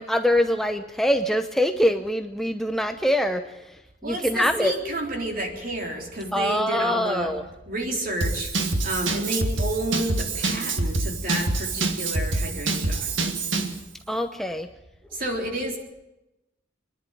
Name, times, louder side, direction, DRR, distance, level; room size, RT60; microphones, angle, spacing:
voice 1, 0.0-3.4 4.0-4.7 6.3-7.4 14.1-14.7, equal, ahead, 6 dB, 0.7 m, -23 dB
voice 2, 4.0-7.3 7.7-8.5 8.8-13.1 13.5-13.7 15.1-15.8, right 1 dB, 50° right, 1 dB, 3.9 m, -30 dB
Drum kit / Drum, 8.2-13.8, right 3 dB, 90° right, 1.8 m, -26 dB
26.5 x 11.0 x 9.1 m, 0.96 s
head